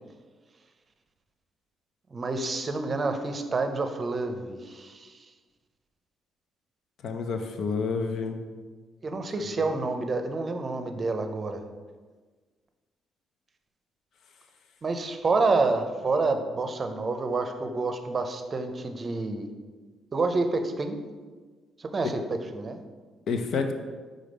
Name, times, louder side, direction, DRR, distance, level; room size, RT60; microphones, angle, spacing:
voice 1, 2.1-5.2 9.0-11.6 14.8-19.5 20.1-21.0 21.8-22.8, right 3 dB, 35° right, 7 dB, 0.6 m, -28 dB
voice 2, 7.0-8.4 9.4-9.7 23.3-23.7, left 5 dB, 70° left, 6 dB, 0.6 m, -29 dB
5.1 x 3.9 x 5.1 m, 1.4 s
cardioid pair, 90°, 0 cm